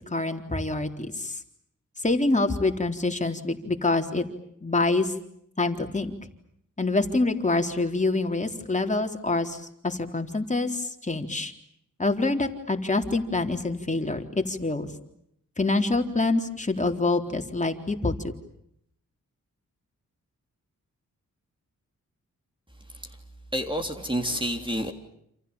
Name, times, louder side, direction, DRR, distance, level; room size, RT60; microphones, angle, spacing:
voice 1, 0.1-1.4 2.0-4.2 4.6-5.1 5.6-6.1 6.8-11.5 12.0-14.9 15.6-18.2, left 2 dB, 20° left, 4 dB, 3.9 m, -26 dB
voice 2, 23.5-24.9, equal, 15° right, 4 dB, 3.4 m, -29 dB
28.5 x 28.5 x 7.3 m, 0.74 s
cardioid pair, 75°, 32 cm